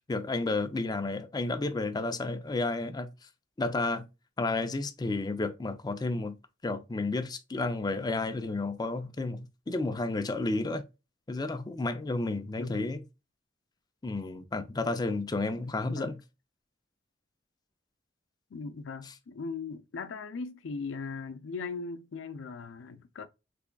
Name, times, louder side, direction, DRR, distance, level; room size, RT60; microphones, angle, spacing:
voice 1, 0.1-3.1 3.6-4.0 4.4-6.4 6.6-9.4 9.7-10.8 11.3-13.0 14.0-16.2, left 2 dB, 20° left, 0.4 m, -31 dB
voice 2, 12.6-12.9 15.9-16.1 18.5-23.3, left 4 dB, 85° left, 0.5 m, -39 dB
3.7 x 3.3 x 2.2 m
head